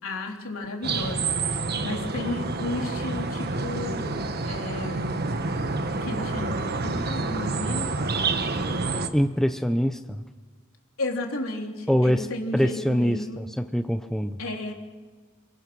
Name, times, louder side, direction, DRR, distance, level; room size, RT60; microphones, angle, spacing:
voice 1, 0.0-4.1 4.5-5.2 6.0-7.9 11.0-13.4 14.4-14.7, left 2 dB, 75° left, 1 dB, 3.6 m, -33 dB
sound 1, 0.8-9.1, right 3 dB, 50° right, 1.4 m, -28 dB
voice 2, 9.1-10.2 11.9-12.3 12.5-14.4, equal, ahead, 8 dB, 0.7 m, -24 dB
28.0 x 21.5 x 6.2 m, 1.4 s
head